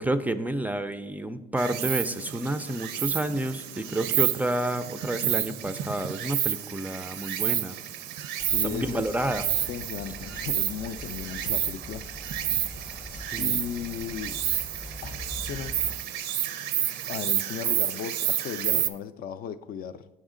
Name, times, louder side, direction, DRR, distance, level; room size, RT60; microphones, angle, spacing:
voice 1, 0.0-7.8 8.6-9.4 13.3-13.6, right 1 dB, 10° right, 0.3 m, -30 dB
Insect, 1.6-18.9, right 11 dB, 80° right, 0.5 m, -30 dB
voice 2, 8.4-9.1 9.7-12.1 12.4-12.7 13.4-14.4 15.0-15.8 17.1-20.1, left 8 dB, 60° left, 0.4 m, -36 dB
sound 1, 8.4-16.0, left 2 dB, 15° left, 0.7 m, -43 dB
7.1 x 6.3 x 3.7 m
cardioid pair, 110°, 17 cm